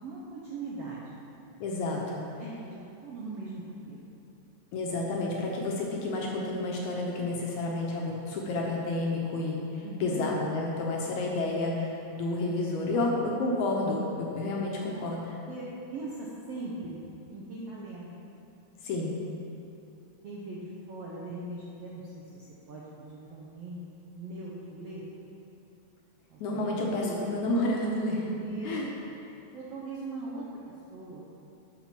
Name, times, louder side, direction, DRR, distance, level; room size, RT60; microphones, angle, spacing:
voice 1, 0.0-1.2 2.3-4.2 9.8-10.2 12.9-13.1 14.8-15.0 15.5-15.7 15.9-17.0 17.3-18.2 20.2-23.8 24.2-25.0 26.3-27.2 28.4-28.8 29.0-29.2 29.5-30.6 30.9-31.3, right 2 dB, 75° right, -6 dB, 1.4 m, -40 dB
voice 2, 1.6-2.3 4.7-15.2 18.8-19.2 26.4-28.4 28.6-28.8, left 2 dB, 70° left, -2 dB, 2.0 m, -30 dB
7.1 x 5.8 x 5.8 m, 2.7 s
omnidirectional pair, 3.9 m